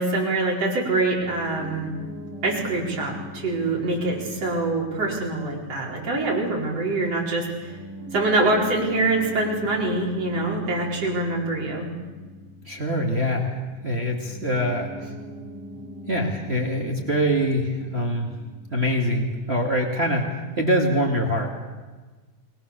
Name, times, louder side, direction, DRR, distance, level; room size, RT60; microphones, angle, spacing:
voice 1, 0.0-1.9 2.4-7.8 8.1-11.9, right 2 dB, 50° right, -2 dB, 5.5 m, -24 dB
Piano, 1.1-20.5, equal, 60° left, 8.6 m, -42 dB
voice 2, 12.7-13.6 13.8-14.9 16.1-18.3 18.7-20.2 20.6-21.5, equal, 20° right, 1 dB, 2.2 m, -24 dB
29.5 x 21.0 x 6.9 m, 1.3 s
omnidirectional pair, 3.5 m